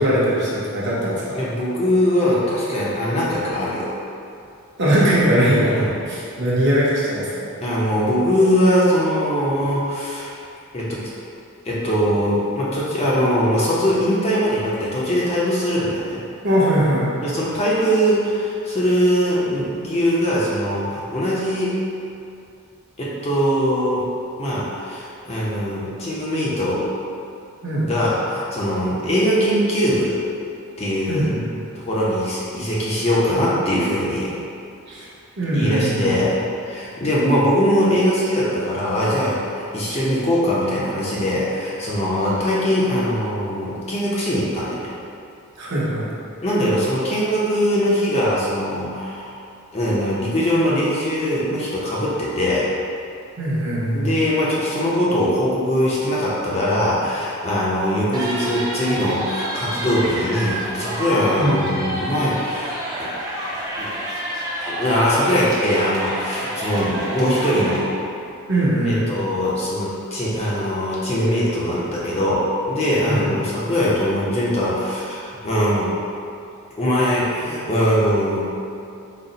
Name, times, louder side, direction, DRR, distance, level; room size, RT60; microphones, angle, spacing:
voice 1, 0.0-1.4 4.8-5.7 6.0-7.5 16.4-17.1 27.6-27.9 31.1-31.6 34.9-35.1 35.4-36.1 45.6-46.1 53.4-54.1 61.4-61.7 68.5-69.0 73.1-73.3, right 1 dB, 50° right, -7 dB, 0.8 m, -20 dB
voice 2, 1.3-3.9 5.7-5.9 7.6-10.3 10.7-11.0 11.6-16.2 17.2-21.7 23.0-24.1 24.4-26.9 27.8-30.2 30.8-31.3 31.8-34.3 35.5-36.3 36.6-44.9 46.4-49.4 49.7-52.7 53.9-63.1 63.8-63.9 64.7-67.9 68.8-75.9 76.8-78.4, equal, 30° left, -7 dB, 0.5 m, -21 dB
sound 1, 58.1-67.8, equal, 15° right, 0.5 m, -29 dB
4.0 x 2.0 x 3.9 m, 2.6 s
head